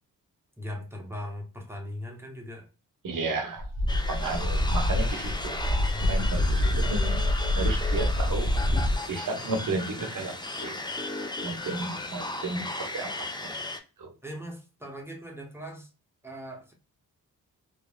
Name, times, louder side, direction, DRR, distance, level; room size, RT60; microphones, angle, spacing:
voice 1, 0.6-2.7 5.9-6.2 14.2-15.9 16.2-16.7, equal, 5° right, 1.0 m, -39 dB
voice 2, 3.0-3.7 4.1-5.6 6.0-8.5 9.1-10.8 11.4-13.5 14.0-14.1, right 3 dB, 55° right, 1.0 m, -33 dB
sound 1, 3.6-8.9, left 1 dB, 45° left, 0.9 m, -26 dB
sound 2, 3.9-13.8, left 2 dB, 10° left, 0.6 m, -36 dB
3.2 x 2.2 x 2.2 m
supercardioid pair, 50°, 38 cm